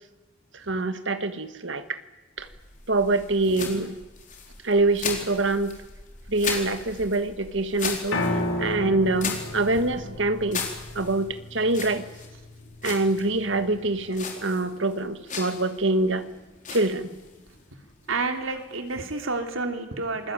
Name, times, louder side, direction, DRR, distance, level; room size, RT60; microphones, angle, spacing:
voice 1, 0.5-2.0 2.4-2.5 2.9-4.0 4.6-5.8 6.3-8.2 8.6-10.7 10.9-12.1 12.8-16.2 16.7-17.2, right 2 dB, 60° right, 10 dB, 1.7 m, -25 dB
sound 1, 2.4-19.7, left 5 dB, 40° left, 4.3 m, -38 dB
Piano, 8.1-14.3, left 1 dB, 75° left, 4.2 m, -33 dB
voice 2, 18.1-20.3, right 3 dB, 75° right, 5 dB, 3.1 m, -30 dB
27.5 x 21.0 x 9.1 m, 1.1 s
head